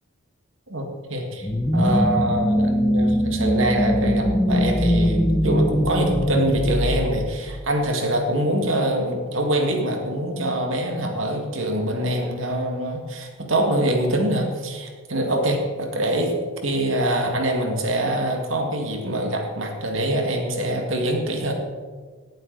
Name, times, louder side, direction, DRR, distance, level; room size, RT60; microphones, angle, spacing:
voice 1, 0.7-1.5 1.7-16.3 16.6-21.5, right 1 dB, 85° right, 2 dB, 2.0 m, -24 dB
sound 1, 1.4-7.9, equal, 15° left, 0.7 m, -21 dB
18.0 x 7.8 x 4.0 m, 1.5 s
head